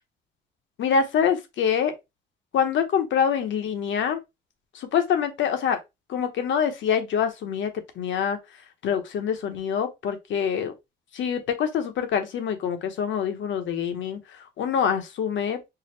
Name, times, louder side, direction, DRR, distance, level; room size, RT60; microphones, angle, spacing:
voice 1, 0.8-1.9 2.5-4.2 4.7-5.8 6.1-7.7 8.0-8.4 8.8-10.7 11.1-14.2 14.6-15.6, left 7 dB, 70° left, 0.9 m, -25 dB
4.7 x 2.1 x 3.2 m
cardioid pair, 90°, 20 cm